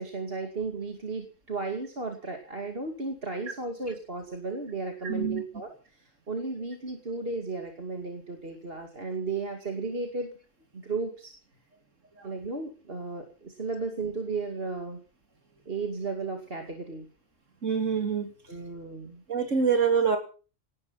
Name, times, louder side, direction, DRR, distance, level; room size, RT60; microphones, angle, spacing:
voice 1, 0.0-10.3 10.7-11.3 12.2-15.0 15.7-17.1 18.5-19.2, right 3 dB, 50° right, 4 dB, 2.7 m, -34 dB
voice 2, 5.0-5.4 12.2-12.3 17.6-18.3 19.3-20.2, right 6 dB, 85° right, 6 dB, 3.3 m, -25 dB
18.0 x 13.0 x 5.8 m, 0.39 s
omnidirectional pair, 1.3 m